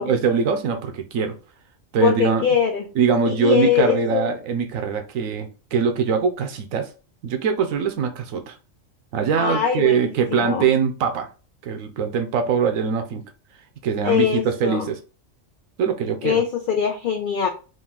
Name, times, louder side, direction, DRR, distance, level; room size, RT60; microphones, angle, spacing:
voice 1, 0.0-1.4 1.9-2.5 3.0-6.9 7.2-8.5 9.1-11.3 11.6-13.2 13.8-15.0 15.8-16.4, right 6 dB, 90° right, 6 dB, 1.1 m, -22 dB
voice 2, 2.0-2.9 3.2-4.4 9.4-10.7 14.0-14.9 16.2-17.5, left 8 dB, 60° left, 4 dB, 0.5 m, -22 dB
3.9 x 2.5 x 3.6 m, 0.34 s
omnidirectional pair, 1.4 m